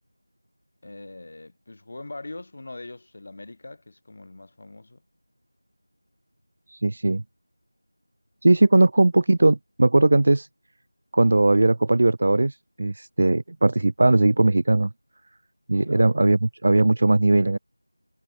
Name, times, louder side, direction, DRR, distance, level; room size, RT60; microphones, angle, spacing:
voice 1, 0.8-5.0 15.8-16.2, left 2 dB, 25° left, 4.2 m, -41 dB
voice 2, 6.7-7.2 8.4-10.5 11.1-14.9 15.7-17.6, right 2 dB, 25° right, 0.5 m, -19 dB
figure-of-eight pair, 180°, 0 cm